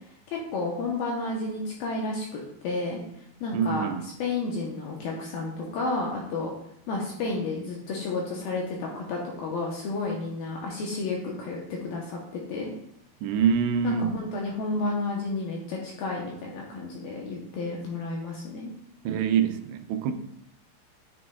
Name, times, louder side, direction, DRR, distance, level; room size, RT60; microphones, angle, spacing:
voice 1, 0.3-6.5 6.9-12.7 13.8-18.7, left 3 dB, 75° left, -2 dB, 2.2 m, -31 dB
voice 2, 3.5-4.0 13.2-14.1 19.1-20.1, right 7 dB, 85° right, 9 dB, 2.8 m, -25 dB
10.0 x 6.1 x 2.3 m, 0.72 s
omnidirectional pair, 5.1 m